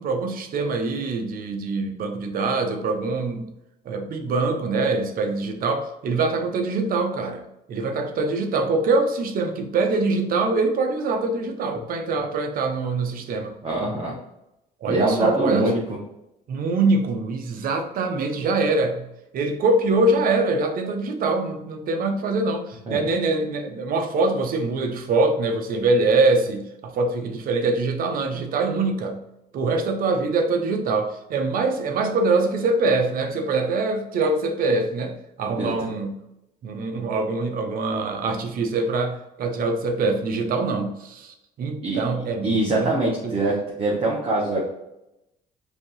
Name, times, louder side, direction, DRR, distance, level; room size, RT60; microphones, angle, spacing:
voice 1, 0.0-3.5 3.9-7.4 7.7-13.5 14.8-15.7 16.5-19.1 19.3-29.2 29.5-36.2 36.6-42.9 43.2-43.3, right 3 dB, 60° right, 5 dB, 0.7 m, -24 dB
voice 2, 13.6-14.2 14.9-15.8 22.9-23.0 35.6-35.9 41.8-42.0 42.4-44.7, right 2 dB, 35° right, -3 dB, 1.0 m, -23 dB
5.0 x 2.8 x 3.1 m, 0.89 s
cardioid pair, 110°, 17 cm